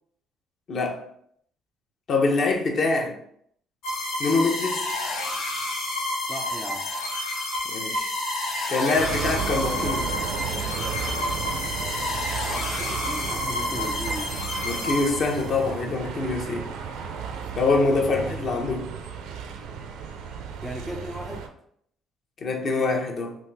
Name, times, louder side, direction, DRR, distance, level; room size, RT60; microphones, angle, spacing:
voice 1, 0.7-1.0 2.1-3.1 4.2-4.9 7.7-8.1 8.7-10.1 14.6-16.7 17.5-18.9 22.4-23.4, left 3 dB, 45° left, 2 dB, 0.7 m, -24 dB
sound 1, 3.8-15.7, left 2 dB, 70° left, 0.9 m, -30 dB
voice 2, 6.2-6.9 12.5-14.4 20.6-21.5, equal, ahead, 2 dB, 0.3 m, -37 dB
Bus, 9.0-21.5, right 7 dB, 90° right, 0.4 m, -34 dB
3.5 x 2.6 x 3.3 m, 0.68 s
cardioid pair, 125°, 0 cm